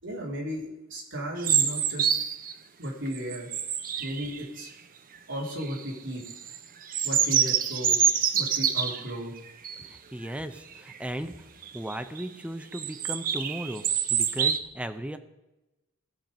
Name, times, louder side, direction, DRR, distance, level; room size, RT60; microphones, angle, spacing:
voice 1, 0.0-2.1 2.8-3.5 4.0-4.7 5.3-6.2 7.0-8.0 8.3-9.3, equal, 60° right, -3 dB, 3.6 m, -35 dB
sound 1, 1.4-2.5 3.1-4.7 5.4-5.8 6.3-9.1 9.6-9.9 10.2-10.3 10.7-11.1 11.6-12.2 12.7-14.6, right 8 dB, 40° right, 0.7 m, -26 dB
voice 2, 9.8-11.3 11.7-15.2, right 1 dB, 5° right, 8 dB, 0.6 m, -36 dB
17.0 x 5.9 x 5.2 m, 1.0 s
head